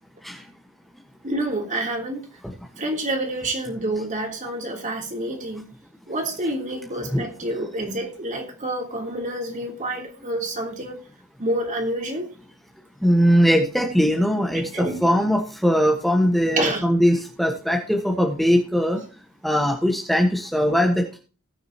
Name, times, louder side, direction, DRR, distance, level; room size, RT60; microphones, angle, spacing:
voice 1, 1.2-2.3 2.8-5.7 6.1-11.0 11.4-12.3 14.5-15.0 16.6-16.9, right 1 dB, 35° right, 3.2 m, -28 dB
voice 2, 13.0-19.0 19.4-21.2, equal, ahead, 1.4 m, -20 dB
19.0 x 6.6 x 2.9 m
head